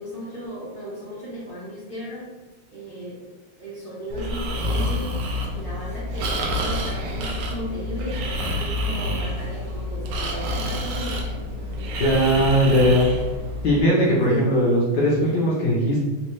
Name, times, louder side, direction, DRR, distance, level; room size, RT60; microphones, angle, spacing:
voice 1, 0.0-2.2 2.7-3.2 3.6-11.3 11.5-12.9 14.3-14.5 15.2-15.4, left 1 dB, 60° right, -9 dB, 0.5 m, -36 dB
Breathing, 4.1-13.8, equal, 75° right, 1.0 m, -28 dB
voice 2, 12.0-13.0 13.6-16.0, equal, 65° left, -6 dB, 1.0 m, -19 dB
4.2 x 2.2 x 3.0 m, 1.3 s
omnidirectional pair, 2.4 m